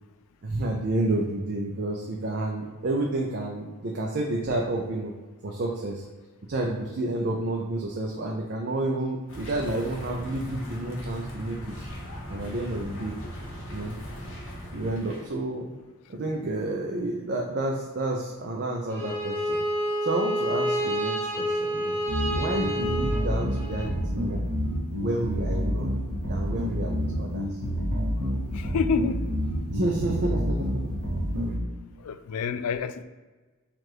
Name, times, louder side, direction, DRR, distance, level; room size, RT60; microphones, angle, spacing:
voice 1, 0.4-5.1 5.4-6.0 6.5-11.7 12.3-13.2 13.7-14.0 14.7-15.7 16.1-19.6 20.0-22.0 22.4-24.4 25.0-25.9 26.3-27.6 29.7-30.7, right 2 dB, 50° right, 0 dB, 0.5 m, -30 dB
sound 1, 9.3-15.4, equal, 60° left, 1.3 m, -39 dB
Bowed string instrument, 18.9-23.9, equal, 10° left, 0.8 m, -29 dB
sound 2, 22.1-31.5, equal, 80° right, 1.4 m, -28 dB
voice 2, 28.5-29.2 32.0-33.0, left 5 dB, 80° left, 12 dB, 0.3 m, -28 dB
4.5 x 2.5 x 4.8 m, 1.3 s
head